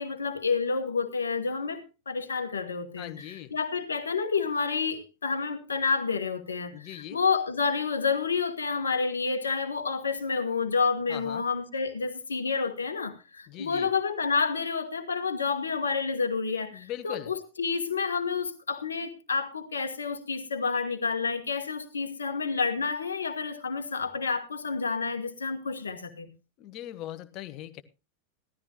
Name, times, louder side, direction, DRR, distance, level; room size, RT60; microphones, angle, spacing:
voice 1, 0.0-26.3, left 5 dB, 70° left, 1.2 m, -29 dB
voice 2, 3.0-3.5 6.7-7.2 11.1-11.5 13.5-13.9 16.7-17.3 26.6-27.8, left 13 dB, 40° left, 1.0 m, -40 dB
16.0 x 13.0 x 2.9 m
figure-of-eight pair, 90°, 0 cm